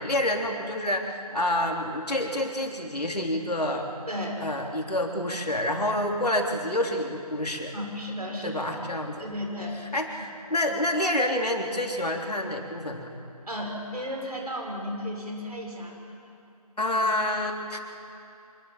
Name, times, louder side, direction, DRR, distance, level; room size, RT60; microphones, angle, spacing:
voice 1, 0.0-3.9 4.4-7.7 8.4-9.3 9.9-13.1 16.8-17.8, left 1 dB, 80° left, 2 dB, 3.5 m, -28 dB
voice 2, 4.1-4.4 7.7-8.6 9.2-9.8 10.2-10.3 13.5-15.9, left 1 dB, 75° right, 1 dB, 6.6 m, -34 dB
26.0 x 21.0 x 7.5 m, 2.8 s
figure-of-eight pair, 180°, 20 cm